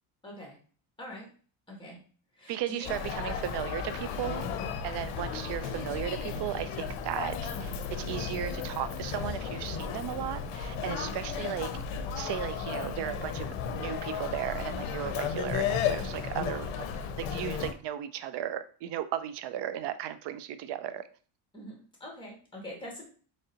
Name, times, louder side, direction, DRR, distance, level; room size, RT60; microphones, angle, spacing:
voice 1, 0.2-0.6 1.0-1.3 1.7-2.0 2.4-2.9 5.2-5.5 10.8-11.1 21.5-23.1, left 1 dB, 10° left, 1.8 m, -43 dB
voice 2, 2.5-4.5 4.8-11.8 12.1-16.7 17.2-21.0, right 11 dB, 55° right, 0.5 m, -35 dB
Human voice, 2.8-17.7, left 7 dB, 75° left, 0.7 m, -34 dB
3.7 x 3.2 x 2.8 m
cardioid pair, 105°, 50 cm